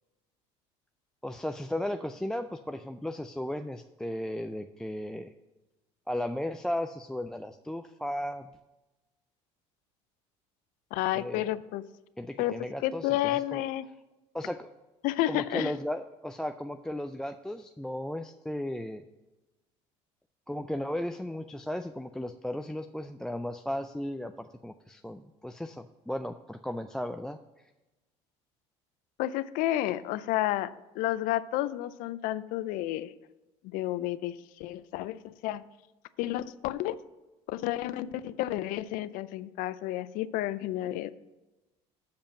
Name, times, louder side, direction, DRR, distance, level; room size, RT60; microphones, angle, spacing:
voice 1, 1.2-5.3 6.1-8.5 11.1-11.5 12.2-13.6 14.3-14.7 15.3-19.0 20.5-27.4, left 1 dB, 5° left, 9 dB, 0.3 m, -35 dB
voice 2, 10.9-11.8 12.4-12.5 12.8-13.8 15.0-15.7 29.2-33.1 33.6-35.6 36.2-36.9 37.5-41.2, left 14 dB, 70° left, 16 dB, 0.4 m, -31 dB
7.0 x 5.2 x 7.1 m, 1.1 s
supercardioid pair, 90°, 15 cm